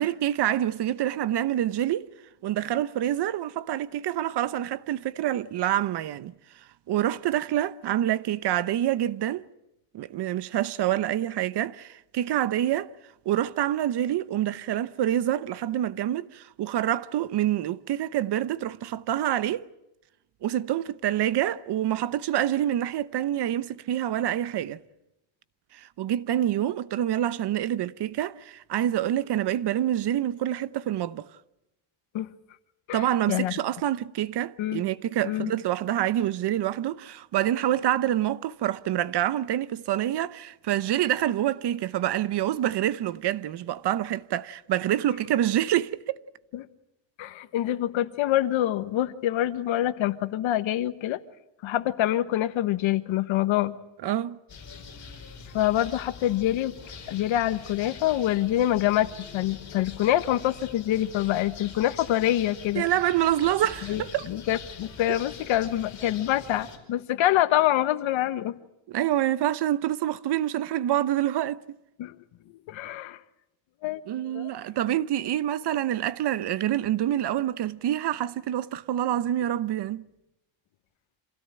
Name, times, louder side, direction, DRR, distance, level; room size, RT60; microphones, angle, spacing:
voice 1, 0.0-2.1 2.4-6.3 6.9-9.5 9.9-12.9 13.3-19.7 20.4-24.8 25.7-31.3 32.9-46.2 54.0-54.4 62.8-64.3 68.9-71.8 74.1-80.0, right 12 dB, 55° right, 0.9 m, -27 dB
voice 2, 32.9-33.5 34.6-34.9 35.2-35.5 46.5-46.6 47.2-51.2 51.6-53.8 55.5-56.7 57.1-62.8 63.9-68.6 72.0-72.2 72.7-73.2 73.8-74.0 74.3-74.5, left 13 dB, 70° left, 1.4 m, -26 dB
sound 1, 54.5-66.8, left 5 dB, 35° left, 5.1 m, -44 dB
27.0 x 16.5 x 8.9 m
cardioid pair, 115°, 48 cm